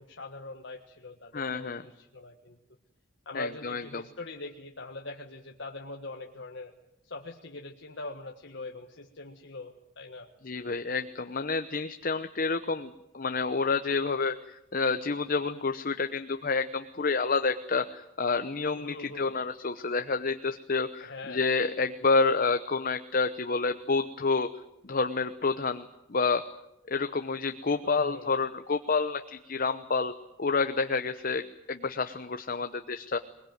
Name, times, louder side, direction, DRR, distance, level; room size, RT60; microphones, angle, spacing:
voice 1, 0.0-2.6 3.2-6.7 7.0-10.3 18.8-19.4 21.0-21.5 27.8-28.3, left 2 dB, 60° left, 2 dB, 1.5 m, -42 dB
voice 2, 1.3-1.8 3.3-4.0 10.4-24.5 24.8-26.4 26.9-30.1 30.4-33.2, left 4 dB, 45° left, 8 dB, 0.8 m, -29 dB
22.0 x 21.0 x 9.3 m, 0.86 s
head